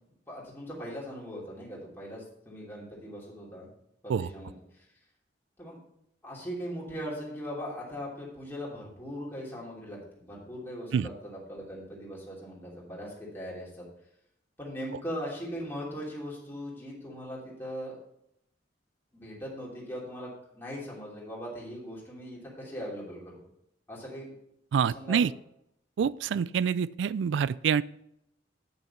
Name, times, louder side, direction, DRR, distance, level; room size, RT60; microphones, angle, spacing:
voice 1, 0.3-3.7 4.0-4.8 5.6-5.8 6.2-13.8 14.6-18.0 19.1-23.4 23.9-24.3 24.9-25.3, equal, 15° left, -5 dB, 3.0 m, -40 dB
voice 2, 24.7-25.3 26.0-27.8, right 7 dB, 90° right, 19 dB, 0.3 m, -26 dB
9.0 x 6.5 x 4.4 m, 0.76 s
head